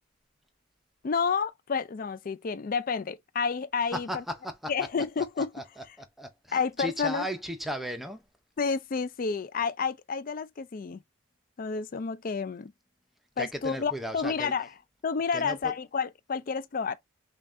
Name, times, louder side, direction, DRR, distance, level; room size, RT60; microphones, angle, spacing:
voice 1, 1.0-4.2 4.7-5.5 6.5-7.3 8.6-11.0 11.6-12.7 13.4-14.7 15.0-17.0, left 5 dB, 40° left, 0.4 m, -30 dB
voice 2, 3.9-4.9 5.4-8.3 13.4-14.5 15.3-15.7, equal, ahead, 0.6 m, -36 dB
5.6 x 2.4 x 2.5 m
head